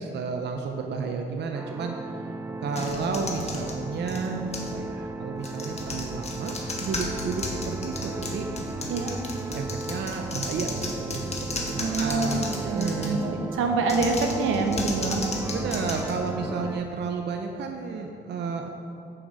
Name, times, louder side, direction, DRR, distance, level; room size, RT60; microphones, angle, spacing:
voice 1, 0.0-2.0 2.6-6.5 6.8-8.5 9.5-13.2 15.5-18.7, right 5 dB, 60° right, 3 dB, 0.7 m, -32 dB
sound 1, 1.5-16.8, right 2 dB, 10° right, 0.4 m, -36 dB
sound 2, 2.7-4.8 5.4-13.3 13.8-16.7, left 2 dB, 35° left, 1.5 m, -35 dB
voice 2, 11.7-15.3, right 3 dB, 85° right, 3 dB, 1.1 m, -26 dB
8.3 x 7.7 x 5.0 m, 2.6 s
cardioid pair, 90°, 20 cm